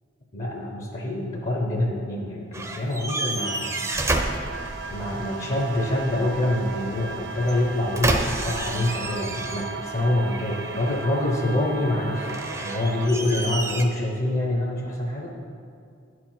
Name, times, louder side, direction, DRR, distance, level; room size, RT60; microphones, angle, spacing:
voice 1, 0.3-3.9 4.9-15.3, left 1 dB, 45° left, 0 dB, 0.8 m, -26 dB
sound 1, 2.5-5.2 7.4-9.9 10.3-11.2 12.1-13.8, right 2 dB, 15° right, 0.6 m, -30 dB
sound 2, 3.4-13.1, right 5 dB, 60° right, 0.5 m, -37 dB
sound 3, 4.5-9.6, right 2 dB, 85° right, 0.9 m, -44 dB
9.4 x 4.8 x 5.8 m, 2.4 s
head